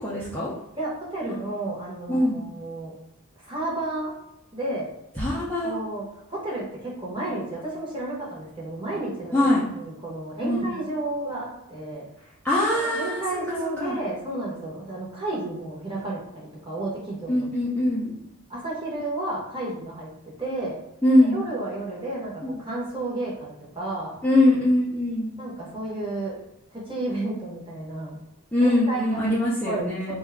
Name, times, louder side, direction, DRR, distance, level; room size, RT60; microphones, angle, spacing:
voice 1, 0.0-0.5 1.3-1.4 2.1-2.4 5.2-5.7 9.3-9.6 10.4-10.7 12.4-13.2 13.8-14.0 17.3-18.2 21.0-21.4 22.4-22.5 24.2-25.3 28.5-30.1, left 1 dB, 5° left, -9 dB, 0.5 m, -22 dB
voice 2, 0.8-2.9 3.4-4.1 4.5-4.9 5.6-6.0 6.3-12.0 12.7-17.5 18.5-20.1 20.4-20.8 21.2-24.2 25.4-26.4 26.7-28.2 28.6-29.3 29.6-30.2, right 2 dB, 20° right, -5 dB, 0.9 m, -32 dB
2.7 x 2.3 x 3.3 m, 0.88 s
head